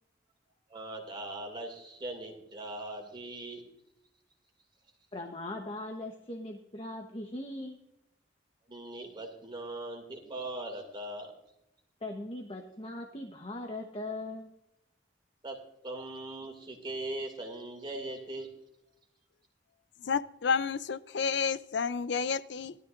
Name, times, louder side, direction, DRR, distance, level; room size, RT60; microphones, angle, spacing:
voice 1, 0.7-3.6 8.7-11.3 15.4-15.6 15.8-18.5, right 2 dB, 25° right, 2 dB, 2.5 m, -40 dB
voice 2, 5.1-7.8 12.0-14.5, left 2 dB, 30° left, 2 dB, 1.1 m, -40 dB
voice 3, 20.0-22.8, left 5 dB, 65° left, 16 dB, 0.5 m, -30 dB
17.5 x 12.5 x 2.6 m, 0.84 s
head